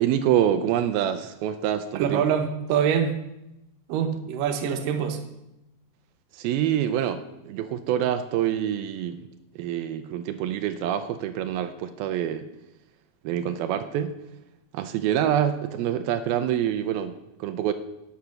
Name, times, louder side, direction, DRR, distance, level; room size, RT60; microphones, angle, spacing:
voice 1, 0.0-2.2 6.3-9.2 9.6-12.5 13.2-14.1 14.7-17.7, right 10 dB, 85° right, 8 dB, 2.6 m, -26 dB
voice 2, 2.0-3.2 3.9-5.2, right 8 dB, 70° right, 6 dB, 2.6 m, -24 dB
13.0 x 9.3 x 5.8 m, 0.90 s
omnidirectional pair, 4.3 m